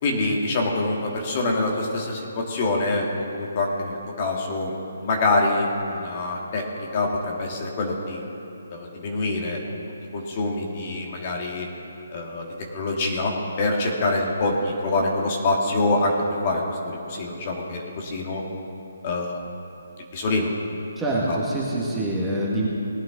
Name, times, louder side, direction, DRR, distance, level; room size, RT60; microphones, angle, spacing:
voice 1, 0.0-3.0 3.3-8.2 8.7-9.6 10.1-11.7 12.1-12.5 12.7-16.1 16.4-18.4 19.0-19.4 20.1-20.5 21.3-21.4, left 2 dB, 35° left, 0 dB, 1.9 m, -25 dB
voice 2, 21.0-22.7, right 1 dB, 5° right, -6 dB, 1.8 m, -25 dB
19.0 x 9.0 x 3.8 m, 2.9 s
hypercardioid pair, 155°, 0 cm